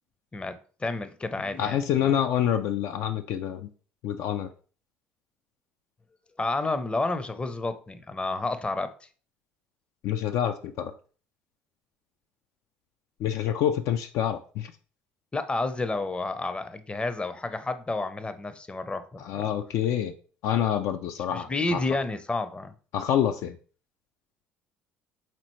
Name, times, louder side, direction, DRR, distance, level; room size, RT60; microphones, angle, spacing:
voice 1, 0.3-2.1 6.4-8.9 15.3-19.4 21.3-22.7, left 2 dB, 20° left, 0.6 m, -30 dB
voice 2, 1.6-3.7 4.0-4.5 10.0-10.9 13.2-14.7 19.2-20.1 20.4-21.8 22.9-23.6, left 10 dB, 60° left, 0.4 m, -27 dB
4.4 x 3.9 x 3.0 m
hypercardioid pair, 60°, 6 cm